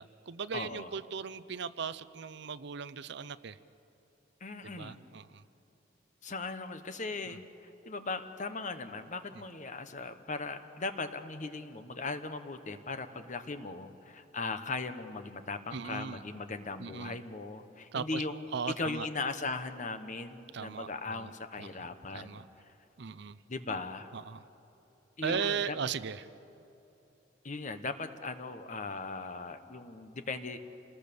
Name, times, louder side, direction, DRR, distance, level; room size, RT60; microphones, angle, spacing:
voice 1, 0.0-3.6 4.6-5.4 7.3-7.4 15.7-16.2 16.8-17.2 17.9-18.2 18.5-19.1 20.5-21.3 21.6-21.7 22.1-22.4 23.0-23.4 24.1-24.4 25.2-26.3, right 6 dB, 65° right, 15 dB, 0.6 m, -37 dB
voice 2, 0.5-0.9 4.4-5.0 6.2-18.5 18.8-22.4 23.5-24.1 25.2-25.8 27.4-30.6, left 3 dB, 40° left, 10 dB, 1.2 m, -38 dB
28.0 x 20.0 x 7.0 m, 3.0 s
head